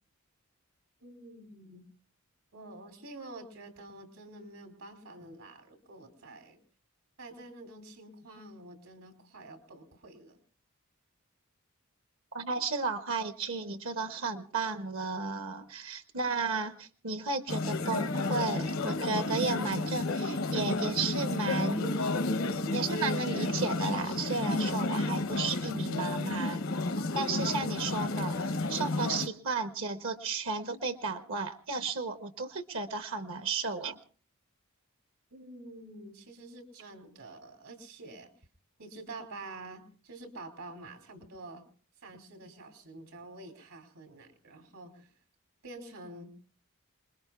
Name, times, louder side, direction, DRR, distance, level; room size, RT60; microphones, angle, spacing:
voice 1, 1.0-1.8 2.5-6.6 7.2-10.4 35.3-38.3 38.8-41.6 42.0-45.1 45.6-46.3, right 2 dB, 80° right, 4 dB, 3.0 m, -48 dB
voice 2, 12.3-21.9 22.7-26.6 27.1-34.0, right 4 dB, 65° right, 10 dB, 0.8 m, -34 dB
sound 1, 17.5-29.3, left 2 dB, 75° left, 0.9 m, -31 dB
27.5 x 21.0 x 2.3 m, 0.40 s
head